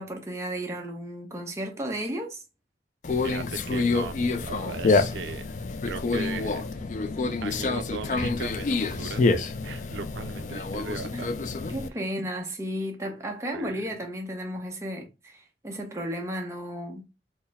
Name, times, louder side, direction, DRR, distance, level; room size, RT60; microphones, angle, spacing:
voice 1, 0.0-2.4 11.1-11.3 11.7-17.0, equal, 15° right, 0.7 m, -34 dB
Conversation, 3.0-11.9, left 3 dB, 45° left, 0.3 m, -27 dB
voice 2, 3.2-5.5 5.8-6.6 7.4-9.3 9.6-11.4 13.5-13.9, right 5 dB, 85° right, 0.4 m, -38 dB
4.3 x 2.1 x 3.4 m
head